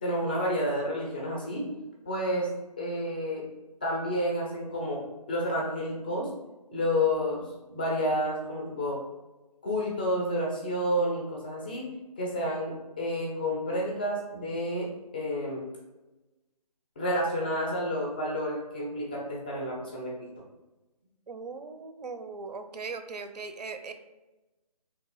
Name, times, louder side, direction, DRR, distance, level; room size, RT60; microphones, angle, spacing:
voice 1, 0.0-1.7 2.1-3.5 3.8-6.3 6.7-9.0 9.6-15.6 17.0-20.3, equal, 15° left, -2 dB, 0.4 m, -30 dB
voice 2, 21.3-23.9, right 4 dB, 75° right, 8 dB, 0.5 m, -39 dB
3.3 x 2.8 x 4.5 m, 1.1 s
figure-of-eight pair, 150°, 21 cm